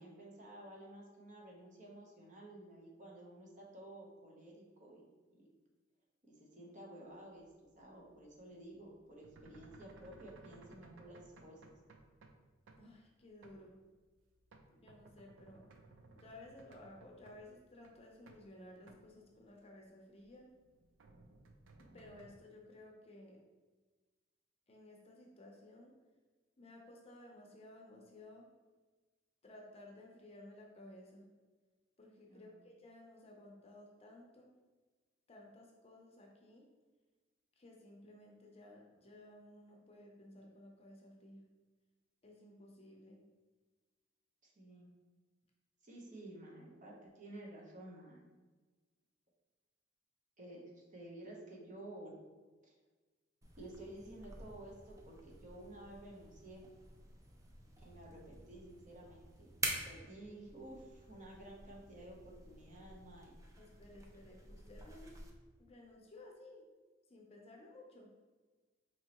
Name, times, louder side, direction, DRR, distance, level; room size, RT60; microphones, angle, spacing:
voice 1, 0.0-5.5 6.2-7.5 7.7-11.6 32.3-32.7 44.4-44.9 45.8-48.3 50.4-52.1 52.6-52.7 53.6-56.7 57.8-59.6 59.8-63.4, right 1 dB, 40° right, -2 dB, 0.9 m, -53 dB
sound 1, 7.4-12.4 12.7-12.9 13.4-13.8 14.1-17.6 17.8-18.5 18.8-19.1 19.4-19.5 20.2-22.3, right 2 dB, 80° right, 0.5 m, -61 dB
voice 2, 12.7-13.8 14.7-15.6 16.2-20.5 21.8-23.4 24.7-25.9 26.6-28.5 29.4-31.3 32.0-34.5 35.3-36.7 37.6-41.4 42.2-43.2 63.6-65.2 65.6-66.6 67.1-68.1, left 1 dB, 30° left, 0 dB, 0.6 m, -56 dB
sound 2, 53.4-65.3, right 2 dB, 15° right, 0.5 m, -48 dB
4.5 x 2.9 x 2.9 m, 1.3 s
head